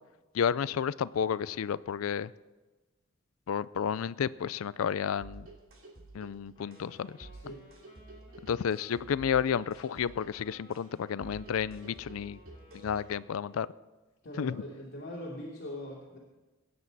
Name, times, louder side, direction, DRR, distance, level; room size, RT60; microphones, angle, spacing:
voice 1, 0.3-2.3 3.5-5.5 6.1-7.3 8.4-12.4 12.7-13.7 14.4-14.6, left 7 dB, 85° left, 18 dB, 0.4 m, -31 dB
sound 1, 5.2-13.2, right 2 dB, 75° right, 3.2 m, -51 dB
Wind instrument woodwind instrument, 6.5-13.7, equal, 25° left, 4.8 m, -59 dB
voice 2, 7.3-7.6 14.2-16.2, left 1 dB, 55° left, -4 dB, 2.8 m, -41 dB
21.5 x 9.5 x 4.1 m, 1.2 s
head